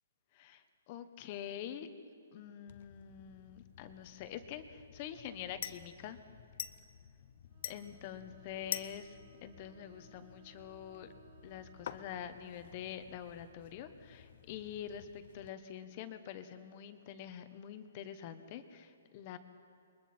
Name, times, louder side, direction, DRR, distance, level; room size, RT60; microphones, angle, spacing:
voice 1, 0.3-1.9 2.3-6.2 7.6-11.1 11.4-19.4, left 9 dB, 30° left, 10 dB, 1.1 m, -46 dB
sound 1, 2.7-15.5, left 9 dB, 50° left, 0.9 m, -49 dB
Bowed string instrument, 7.5-12.5, right 11 dB, 55° right, 2.6 m, -65 dB
28.0 x 22.5 x 4.4 m, 2.6 s
hypercardioid pair, 170°, 0 cm